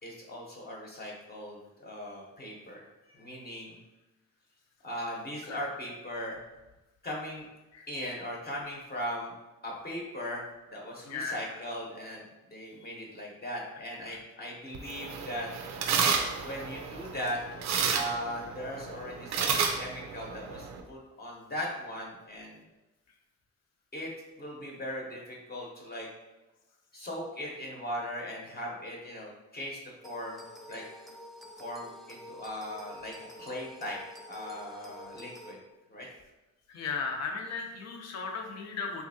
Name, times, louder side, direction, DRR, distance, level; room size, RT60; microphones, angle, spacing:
voice 1, 0.0-3.8 4.8-6.4 7.0-7.5 7.9-9.3 9.6-15.5 16.4-17.4 17.9-22.6 23.9-24.1 24.4-26.1 26.9-30.4 30.7-30.8 31.6-34.0 34.3-35.6 35.9-36.1, equal, 30° left, -3 dB, 0.9 m, -39 dB
sound 1, 14.7-20.8, right 6 dB, 65° right, 0.5 m, -32 dB
sound 2, 30.0-35.5, left 1 dB, ahead, 0.4 m, -48 dB
voice 2, 36.7-39.1, left 5 dB, 60° left, 2 dB, 0.7 m, -36 dB
3.5 x 2.8 x 2.7 m, 1.0 s
cardioid pair, 90°, 30 cm